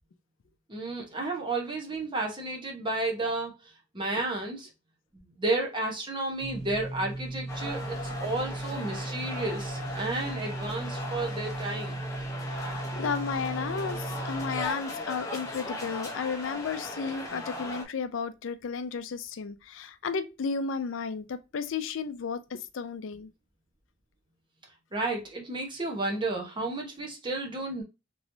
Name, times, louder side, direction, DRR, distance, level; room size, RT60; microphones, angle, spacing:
voice 1, 0.7-3.5 3.9-4.7 5.1-12.0 24.9-27.8, right 2 dB, 25° right, 1.0 m, -32 dB
sound 1, 6.4-14.6, right 2 dB, 35° left, 1.4 m, -37 dB
sound 2, 7.5-17.8, left 1 dB, 15° left, 0.7 m, -38 dB
voice 2, 12.5-23.3, left 5 dB, 75° left, 0.4 m, -33 dB
3.1 x 3.0 x 2.6 m
head